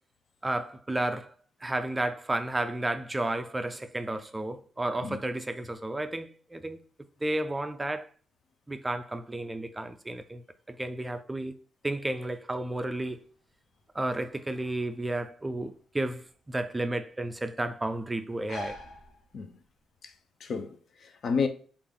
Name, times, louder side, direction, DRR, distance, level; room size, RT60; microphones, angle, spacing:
voice 1, 0.4-1.3 1.6-6.8 7.2-8.1 8.7-13.2 13.9-18.8, right 1 dB, 15° right, 0.3 m, -32 dB
sound 1, 12.9-19.8, left 2 dB, 85° left, 1.0 m, -48 dB
voice 2, 20.4-21.5, left 5 dB, 55° left, 0.5 m, -31 dB
3.3 x 2.4 x 3.7 m
cardioid pair, 90°, 0 cm